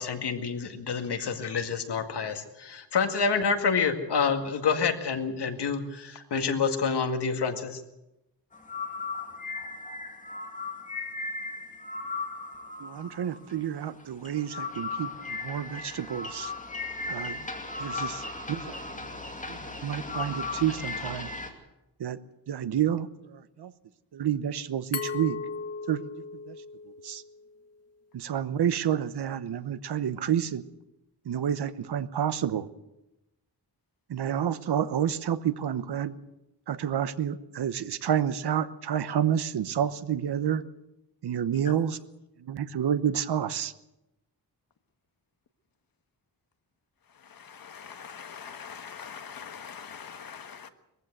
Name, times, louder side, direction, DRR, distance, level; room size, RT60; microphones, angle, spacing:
voice 1, 0.0-7.8, left 5 dB, 80° left, 6 dB, 2.1 m, -28 dB
sound 1, 8.5-21.5, left 3 dB, 20° left, 2.5 m, -36 dB
voice 2, 12.8-16.5 17.1-17.5 17.8-19.2 19.5-21.3 22.0-22.2 22.5-23.7 24.1-25.4 25.9-26.1 26.5-26.6 27.0-27.2 28.1-30.6 31.2-32.7 34.1-36.2 36.7-40.6 41.2-42.0 42.4-43.7, right 9 dB, 75° right, 14 dB, 1.0 m, -29 dB
Glass, 24.9-27.7, left 5 dB, 40° left, 1.9 m, -37 dB
voice 3, 47.1-50.7, left 7 dB, 60° left, 9 dB, 1.5 m, -43 dB
21.5 x 15.0 x 8.0 m, 0.92 s
wide cardioid pair, 155°, 40 cm